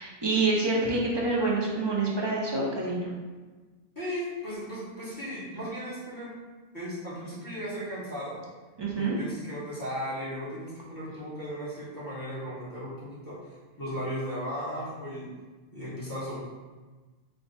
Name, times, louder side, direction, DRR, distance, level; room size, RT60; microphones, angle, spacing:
voice 1, 0.0-3.1 8.8-9.2, right 3 dB, 30° right, -4 dB, 0.5 m, -27 dB
voice 2, 3.9-6.3 6.7-8.4 8.9-15.3 15.7-16.4, equal, 15° left, -10 dB, 1.3 m, -36 dB
3.4 x 2.4 x 3.9 m, 1.3 s
omnidirectional pair, 1.2 m